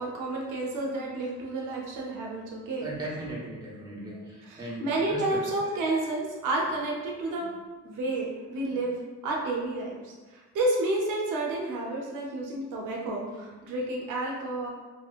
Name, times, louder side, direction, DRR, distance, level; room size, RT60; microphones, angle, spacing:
voice 1, 0.0-2.9 4.5-7.5 7.8-8.9 9.2-14.7, right 2 dB, 85° right, -2 dB, 0.7 m, -30 dB
voice 2, 2.8-5.4, right 1 dB, 15° right, -6 dB, 0.9 m, -38 dB
2.8 x 2.8 x 2.4 m, 1.3 s
cardioid pair, 90°, 30 cm